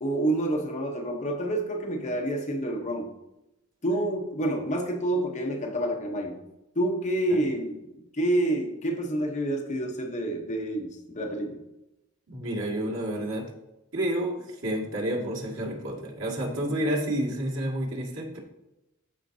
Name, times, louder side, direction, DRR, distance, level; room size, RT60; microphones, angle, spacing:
voice 1, 0.0-3.1 3.8-6.4 6.8-11.6, right 1 dB, 35° left, 2 dB, 0.9 m, -28 dB
voice 2, 12.3-13.5 13.9-18.4, right 1 dB, 80° right, -3 dB, 2.1 m, -30 dB
13.5 x 5.2 x 2.7 m, 0.92 s
head